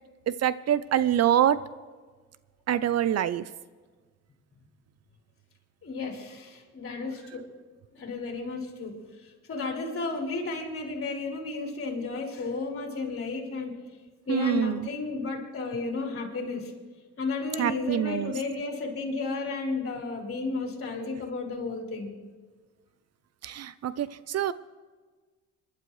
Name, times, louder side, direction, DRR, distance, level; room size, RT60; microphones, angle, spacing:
voice 1, 0.3-1.6 2.7-3.5 14.3-14.9 17.6-18.3 23.4-24.5, right 10 dB, 55° right, 16 dB, 0.6 m, -25 dB
voice 2, 5.8-7.5 7.9-9.0 9.5-13.8 14.3-16.7 17.2-22.1, left 3 dB, 45° left, -1 dB, 3.9 m, -33 dB
26.5 x 12.0 x 3.2 m, 1.4 s
cardioid pair, 90°, 30 cm